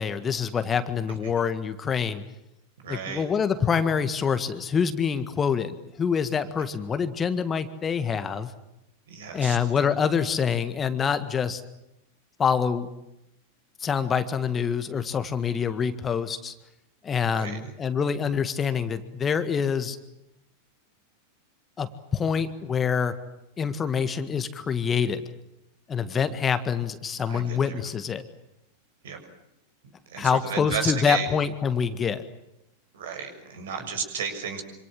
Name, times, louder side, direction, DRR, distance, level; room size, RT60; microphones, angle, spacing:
voice 1, 0.0-2.2 2.9-8.5 9.3-11.6 12.4-12.9 13.8-16.5 17.0-20.0 21.8-23.1 23.6-25.2 25.9-28.2 30.2-32.2, left 6 dB, 20° left, 11 dB, 1.8 m, -26 dB
voice 2, 2.8-3.2 9.1-9.6 17.3-17.6 27.3-27.8 29.0-29.2 30.1-31.3 32.9-34.6, right 6 dB, 60° right, 6 dB, 6.7 m, -33 dB
27.0 x 26.5 x 7.6 m, 0.87 s
figure-of-eight pair, 90°, 0 cm